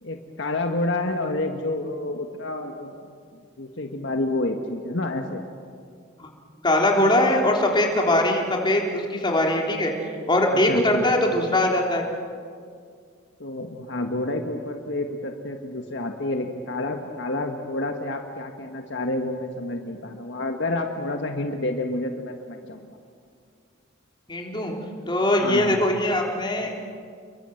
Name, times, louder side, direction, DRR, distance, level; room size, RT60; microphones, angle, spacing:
voice 1, 0.0-3.1 3.6-5.4 10.5-11.1 13.4-23.0 25.4-25.8, left 2 dB, 65° left, 3 dB, 1.7 m, -29 dB
voice 2, 6.6-9.9 10.3-12.0 24.3-24.7 25.1-26.7, left 1 dB, 25° left, 0 dB, 3.6 m, -21 dB
30.0 x 23.0 x 7.9 m, 2.2 s
head